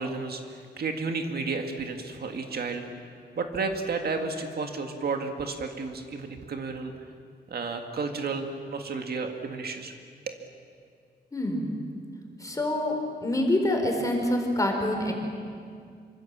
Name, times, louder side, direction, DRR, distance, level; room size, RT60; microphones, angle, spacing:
voice 1, 0.0-3.0 3.4-6.9 7.5-9.9 10.3-10.4, right 4 dB, 60° right, 4 dB, 1.9 m, -32 dB
voice 2, 11.3-11.7 12.4-15.1, left 1 dB, 20° left, 2 dB, 4.2 m, -26 dB
26.5 x 25.0 x 7.4 m, 2.2 s
wide cardioid pair, 170°, 18 cm